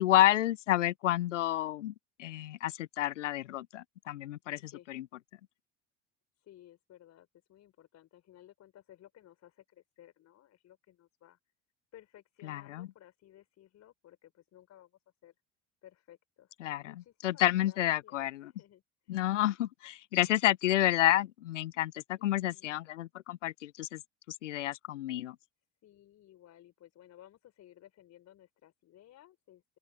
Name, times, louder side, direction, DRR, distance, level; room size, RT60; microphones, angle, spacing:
voice 1, 0.0-1.9 2.2-5.0 12.5-12.9 16.6-16.9 17.2-18.5 19.1-24.0 24.4-25.4, left 14 dB, 80° left, 0.6 m, -30 dB
voice 2, 4.6-4.9 6.4-11.4 11.9-15.3 15.8-16.5 16.8-19.3 22.1-22.8 25.8-29.8, left 12 dB, 45° left, 4.3 m, -58 dB
open air
figure-of-eight pair, 60°, 36 cm